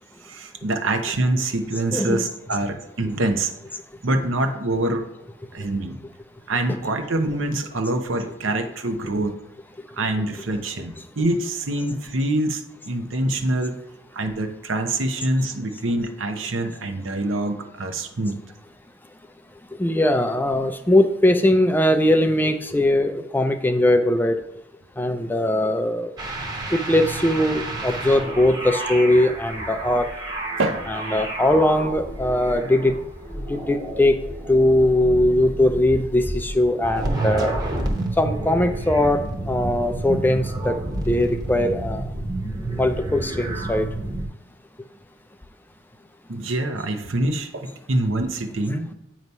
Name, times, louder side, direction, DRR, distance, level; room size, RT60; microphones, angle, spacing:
voice 1, 0.2-3.5 4.0-5.1 5.5-6.0 6.5-9.3 10.0-13.8 14.1-18.4 30.6-30.9 46.3-48.9, right 2 dB, 80° right, 6 dB, 0.8 m, -25 dB
voice 2, 1.7-2.2 6.7-6.8 19.8-24.4 25.0-26.1 26.7-30.1 30.9-32.9 33.3-34.2 34.5-37.5 38.2-40.8 41.1-42.0 42.8-43.9 48.7-48.8, left 1 dB, 10° left, 8 dB, 0.4 m, -20 dB
sound 1, 26.2-44.3, right 1 dB, 20° right, 0.9 m, -30 dB
8.2 x 3.0 x 5.3 m, 0.94 s
head